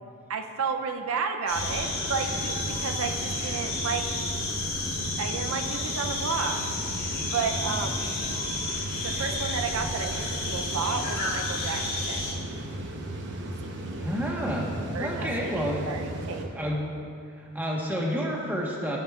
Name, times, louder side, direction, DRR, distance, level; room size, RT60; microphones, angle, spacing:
voice 1, 0.3-4.1 5.2-6.6 7.2-8.1 9.0-12.5 13.6-14.1 14.9-16.5, right 5 dB, 75° right, 5 dB, 0.5 m, -32 dB
sound 1, 1.5-12.3, left 3 dB, 45° left, 2.1 m, -32 dB
sound 2, 1.5-16.4, right 1 dB, 55° right, 0.9 m, -35 dB
voice 2, 14.0-15.9 16.5-16.9 17.4-19.0, equal, 10° right, -3 dB, 1.2 m, -30 dB
14.5 x 7.8 x 2.4 m, 2.4 s
head